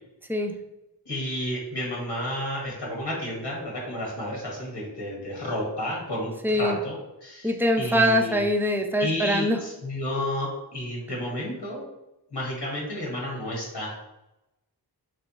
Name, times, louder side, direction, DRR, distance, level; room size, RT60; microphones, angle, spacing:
voice 1, 1.0-7.0 7.2-8.4 9.0-11.8 12.3-13.9, left 1 dB, 80° left, -3 dB, 1.6 m, -31 dB
voice 2, 6.4-6.8 7.4-9.6, equal, 5° right, 3 dB, 0.5 m, -23 dB
3.5 x 3.3 x 4.1 m, 0.92 s
wide cardioid pair, 60°, 41 cm